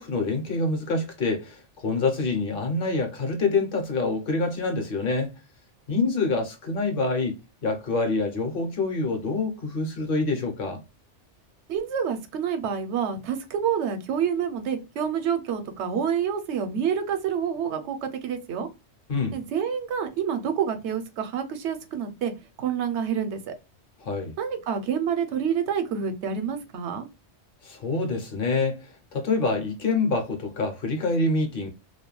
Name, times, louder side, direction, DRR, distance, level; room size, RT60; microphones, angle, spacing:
voice 1, 0.0-5.3 5.9-7.3 7.6-10.8 19.1-19.3 24.0-24.3 27.6-28.8 29.1-31.7, left 3 dB, 55° left, 0.8 m, -26 dB
voice 2, 11.7-18.0 18.2-18.7 19.3-22.3 22.6-23.5 24.4-27.1, right 7 dB, 75° right, 0.9 m, -28 dB
2.3 x 2.2 x 3.0 m
omnidirectional pair, 1.2 m